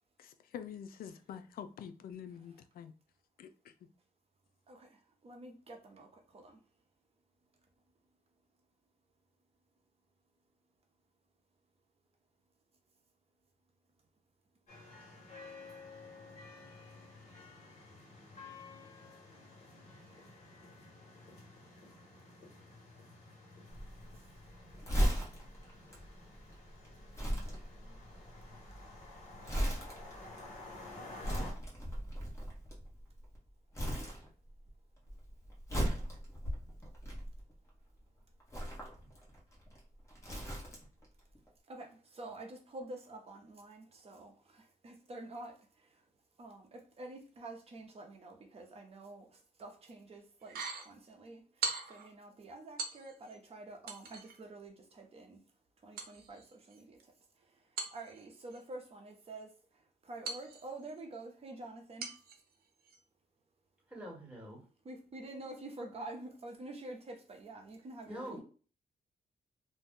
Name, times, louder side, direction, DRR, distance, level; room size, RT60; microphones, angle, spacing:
voice 1, 0.2-2.9 3.4-3.7, left 8 dB, 75° left, 0.4 m, -47 dB
voice 2, 4.7-6.6 19.4-19.5 24.1-24.2 41.7-46.1 46.4-55.4 55.8-62.2 64.8-68.4, right 2 dB, 40° right, 0.7 m, -48 dB
sound 1, 14.7-31.5, left 2 dB, 45° left, 1.4 m, -52 dB
Crumpling crinkling, 23.7-33.4 33.7-34.7 35.0-37.7 38.4-41.1 41.4-41.5, equal, 20° left, 1.1 m, -37 dB
sound 2, 50.4-50.9 51.6-52.1 52.8-53.4 53.9-54.4 56.0-57.0 57.8-58.6 60.3-61.0 62.0-62.4 62.8-63.0, right 4 dB, 90° right, 0.6 m, -41 dB
voice 3, 63.9-64.6 68.1-68.4, equal, 10° right, 1.2 m, -45 dB
2.6 x 2.2 x 3.5 m
wide cardioid pair, 140°, 15 cm